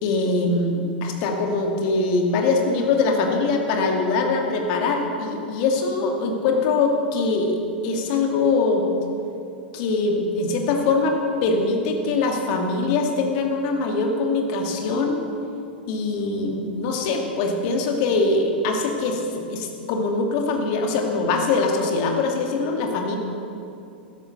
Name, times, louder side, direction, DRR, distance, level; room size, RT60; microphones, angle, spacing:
voice 1, 0.0-8.9 9.7-15.2 15.9-23.2, left 3 dB, 50° left, 2 dB, 2.5 m, -23 dB
12.5 x 11.0 x 7.8 m, 2.6 s
figure-of-eight pair, 95°, 6 cm